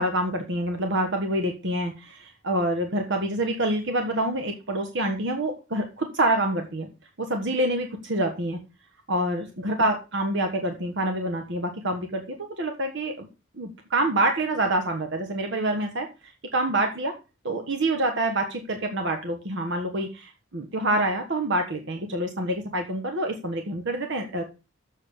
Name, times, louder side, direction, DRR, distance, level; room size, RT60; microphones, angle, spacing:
voice 1, 0.0-6.9 7.2-8.6 9.1-13.3 13.5-17.1 17.4-24.4, right 1 dB, 65° right, 5 dB, 1.4 m, -27 dB
7.1 x 6.8 x 6.7 m, 0.30 s
head